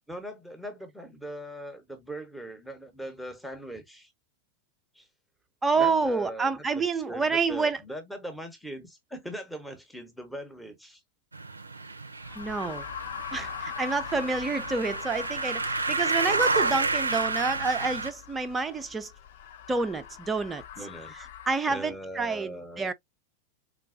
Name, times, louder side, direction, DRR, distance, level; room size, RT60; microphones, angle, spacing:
voice 1, 0.1-4.1 4.9-5.1 5.8-11.0 20.8-21.3 21.7-22.9, right 1 dB, ahead, 0.8 m, -40 dB
voice 2, 5.6-7.8 12.4-12.8 13.3-19.1 19.7-20.6 21.5-22.9, right 4 dB, 15° right, 0.4 m, -28 dB
sound 1, 11.3-18.1, right 3 dB, 80° right, 0.4 m, -30 dB
sound 2, 12.2-21.6, left 9 dB, 55° left, 0.4 m, -41 dB
4.2 x 2.2 x 2.5 m
figure-of-eight pair, 90°, 0 cm